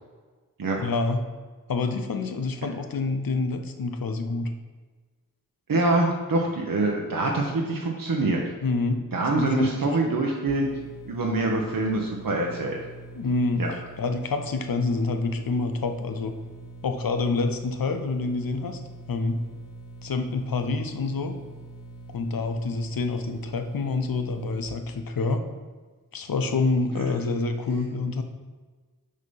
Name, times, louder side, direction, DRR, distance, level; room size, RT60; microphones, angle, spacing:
voice 1, 0.8-1.3 1.7-4.5 8.6-9.0 9.3-10.1 13.1-13.6 14.0-16.3 16.8-18.8 19.1-19.4 20.0-21.4 22.1-25.4 26.1-28.2, left 3 dB, 85° left, 7 dB, 0.6 m, -27 dB
voice 2, 5.7-8.4 9.1-10.7 11.0-12.8 13.6-13.7 26.9-27.1, right 2 dB, 80° right, 0 dB, 0.7 m, -25 dB
sound 1, 10.5-24.7, right 2 dB, 50° left, 1.1 m, -44 dB
6.3 x 2.8 x 5.4 m, 1.4 s
wide cardioid pair, 45°, 34 cm